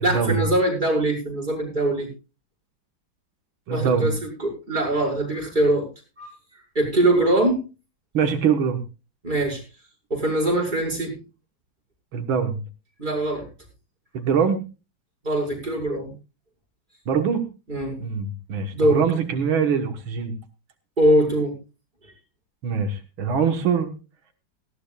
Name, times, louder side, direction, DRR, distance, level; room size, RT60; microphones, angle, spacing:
voice 1, 0.0-2.1 3.7-5.9 6.2-6.3 6.7-7.6 9.2-9.6 10.1-11.2 13.0-13.5 15.2-16.1 17.7-18.0 18.7-19.0 21.0-21.5, right 1 dB, 20° right, -2 dB, 5.8 m, -22 dB
voice 2, 3.7-4.1 8.1-8.8 12.1-12.6 14.1-14.6 17.1-17.4 18.0-20.3 22.6-23.9, right 6 dB, 85° right, 6 dB, 2.3 m, -23 dB
18.5 x 15.5 x 2.4 m, 0.31 s
omnidirectional pair, 2.2 m